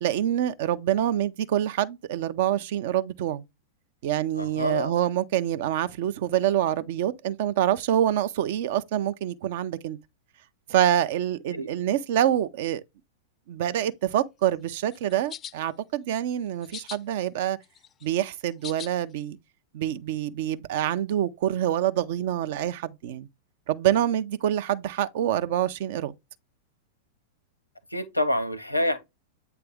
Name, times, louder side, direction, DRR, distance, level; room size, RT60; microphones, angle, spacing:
voice 1, 0.0-3.4 4.0-10.0 10.7-12.8 13.5-17.6 18.0-19.4 19.7-23.3 23.7-26.1, right 11 dB, 55° right, 0.5 m, -26 dB
voice 2, 4.3-4.9 11.5-11.7 27.9-29.0, left 1 dB, 90° left, 0.9 m, -27 dB
sound 1, 14.9-15.5 16.6-17.0 17.4-18.9, left 9 dB, 25° left, 0.5 m, -40 dB
8.2 x 3.4 x 3.4 m
figure-of-eight pair, 95°, 0 cm